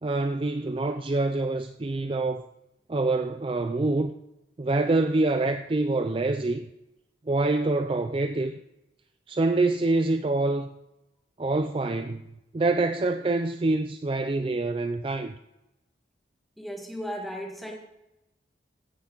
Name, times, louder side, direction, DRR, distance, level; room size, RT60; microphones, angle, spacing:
voice 1, 0.0-2.5 2.9-4.1 4.6-6.6 7.3-8.6 9.3-10.7 11.4-12.3 12.5-15.3, right 2 dB, 30° right, 0.4 m, -26 dB
voice 2, 16.6-17.8, equal, ahead, 1.7 m, -35 dB
16.0 x 10.0 x 3.9 m
head